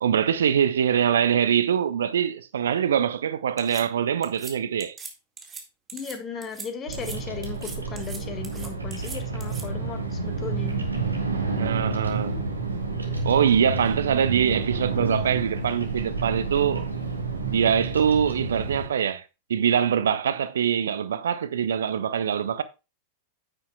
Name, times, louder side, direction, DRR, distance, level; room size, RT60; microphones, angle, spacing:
voice 1, 0.0-5.0 11.6-12.4 13.2-16.9 17.5-19.2 19.5-22.6, right 8 dB, 65° right, 0.5 m, -23 dB
sound 1, 3.6-3.8 4.2-4.5 4.8-5.1 5.4-5.6 5.9-6.1 6.4-6.7 6.9-7.2 7.4-8.2 8.4-9.6, right 5 dB, 20° right, 1.9 m, -40 dB
voice 2, 5.9-10.8, left 6 dB, 25° left, 1.9 m, -36 dB
Bird vocalization bird call bird song, 6.9-18.9, right 3 dB, 80° right, 1.5 m, -29 dB
9.8 x 8.6 x 2.3 m
figure-of-eight pair, 90°, 0 cm